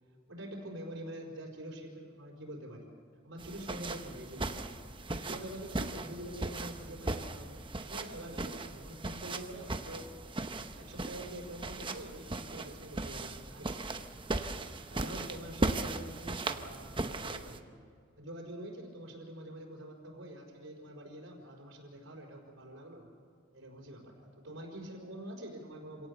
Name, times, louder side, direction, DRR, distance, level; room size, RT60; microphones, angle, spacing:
voice 1, 0.3-2.9 3.2-4.8 5.1-7.5 7.8-10.1 10.6-14.0 14.9-17.8 18.2-23.1 23.5-26.1, right 1 dB, 75° right, -4 dB, 4.9 m, -46 dB
sound 1, 3.4-17.6, right 2 dB, 25° right, 0.9 m, -38 dB
26.5 x 18.0 x 7.1 m, 2.2 s
head